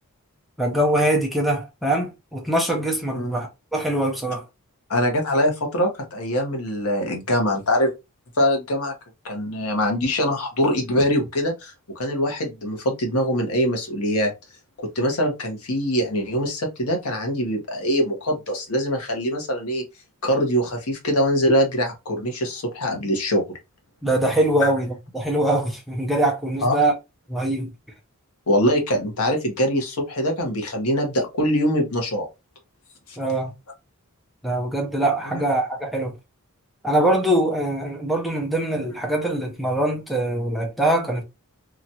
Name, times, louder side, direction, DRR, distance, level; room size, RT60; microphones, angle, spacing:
voice 1, 0.6-4.4 24.0-26.9 27.3-27.7 33.2-33.5 34.4-36.1 36.8-41.2, right 1 dB, ahead, 0.6 m, -23 dB
voice 2, 4.9-7.9 8.4-8.9 9.2-14.3 14.9-19.8 20.2-23.4 24.6-24.7 26.6-26.8 28.5-32.3 33.1-33.2 35.3-35.4, equal, 85° left, 1.0 m, -23 dB
2.9 x 2.4 x 2.7 m
head